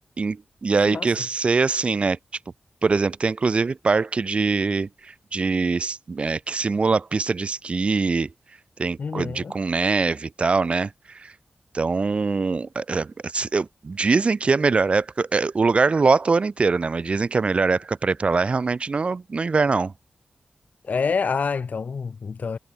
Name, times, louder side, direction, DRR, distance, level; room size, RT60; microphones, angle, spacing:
voice 1, 0.2-2.2 2.8-8.3 8.8-11.3 11.7-19.9, right 4 dB, 35° right, 0.4 m, -23 dB
voice 2, 9.0-9.5 20.9-22.6, left 5 dB, 55° left, 0.9 m, -27 dB
wide cardioid pair, 170°, 3 cm